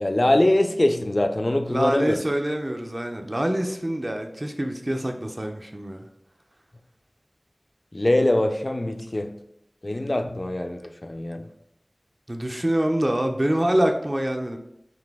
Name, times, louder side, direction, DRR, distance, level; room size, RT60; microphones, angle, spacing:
voice 1, 0.0-2.2 7.9-9.3 9.8-11.5, left 1 dB, 45° left, 7 dB, 0.3 m, -23 dB
voice 2, 1.7-6.1 12.3-14.6, right 1 dB, 35° right, 4 dB, 0.4 m, -25 dB
4.0 x 2.5 x 3.4 m, 0.79 s
wide cardioid pair, 45°, 0 cm